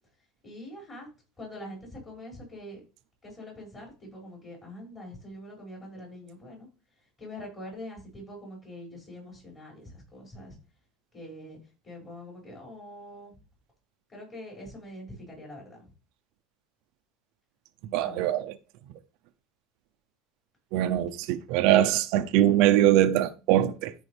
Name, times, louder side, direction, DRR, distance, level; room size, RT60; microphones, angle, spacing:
voice 1, 0.4-1.1 1.4-2.8 3.2-6.7 7.2-10.6 11.1-11.6 11.8-13.3 14.1-15.9 18.0-18.3, left 1 dB, 20° left, 6.1 m, -44 dB
voice 2, 17.8-18.6 20.7-23.9, right 12 dB, 60° right, 0.6 m, -22 dB
13.5 x 5.3 x 3.4 m
cardioid pair, 155°, 0 cm